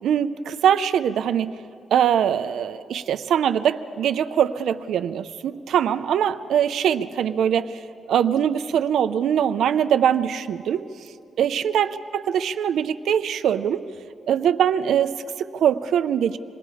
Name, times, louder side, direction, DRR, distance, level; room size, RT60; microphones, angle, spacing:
voice 1, 0.0-1.5 1.9-7.8 8.1-10.8 11.4-13.8 14.3-16.4, right 9 dB, 80° right, 11 dB, 0.6 m, -22 dB
26.5 x 20.0 x 4.9 m, 2.5 s
wide cardioid pair, 170°, 0 cm